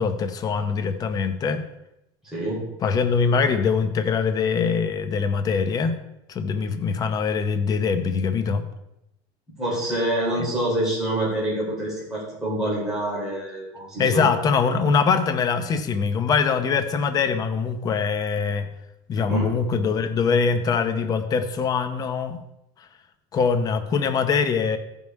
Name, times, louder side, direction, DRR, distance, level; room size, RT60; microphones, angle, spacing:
voice 1, 0.0-1.7 2.8-6.0 6.3-8.7 14.0-18.7 19.1-22.4 23.3-24.8, left 5 dB, 25° left, 9 dB, 0.7 m, -23 dB
voice 2, 2.2-2.6 9.6-14.3 19.3-19.6, right 1 dB, 5° right, -7 dB, 3.4 m, -26 dB
14.0 x 5.4 x 4.6 m, 0.88 s
cardioid pair, 160°, 14 cm